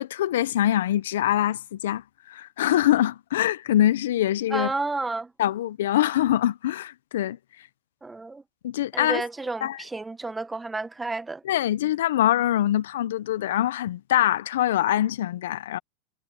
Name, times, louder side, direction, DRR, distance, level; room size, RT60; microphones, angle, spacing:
voice 1, 0.0-4.7 5.4-7.4 8.6-9.2 9.6-9.8 11.4-15.8, left 12 dB, 75° left, 1.0 m, -24 dB
voice 2, 4.5-5.3 8.0-8.4 8.9-11.4, right 3 dB, 10° right, 1.7 m, -31 dB
hypercardioid pair, 95°, 0 cm